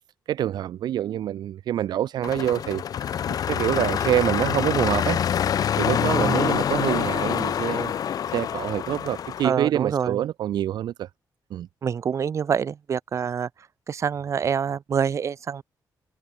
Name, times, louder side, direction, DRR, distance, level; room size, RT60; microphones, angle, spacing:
voice 1, 0.3-2.8 3.5-5.2 5.8-7.9 8.3-11.1 11.5-11.7, right 11 dB, 70° right, 0.4 m, -26 dB
sound 1, 2.2-9.5, left 9 dB, 55° left, 1.2 m, -26 dB
voice 2, 6.2-6.5 9.4-10.2 11.8-13.5 13.9-15.6, right 7 dB, 40° right, 1.1 m, -26 dB
wide cardioid pair, 170°, 8 cm